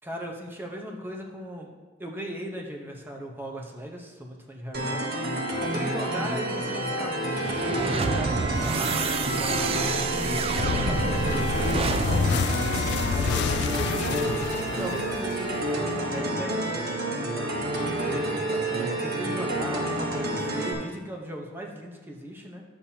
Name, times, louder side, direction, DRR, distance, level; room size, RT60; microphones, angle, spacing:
voice 1, 0.0-1.7 2.0-5.0 5.3-9.9 10.6-12.5 12.8-14.4 14.7-17.4 17.8-22.6, right 1 dB, 10° right, 0 dB, 0.9 m, -38 dB
sound 1, 4.7-20.7, right 1 dB, 55° right, 1.2 m, -29 dB
sound 2, 7.3-13.6, right 4 dB, 30° right, 0.3 m, -29 dB
sound 3, 10.5-15.7, left 6 dB, 65° left, 0.3 m, -29 dB
10.0 x 7.1 x 2.9 m, 1.3 s
head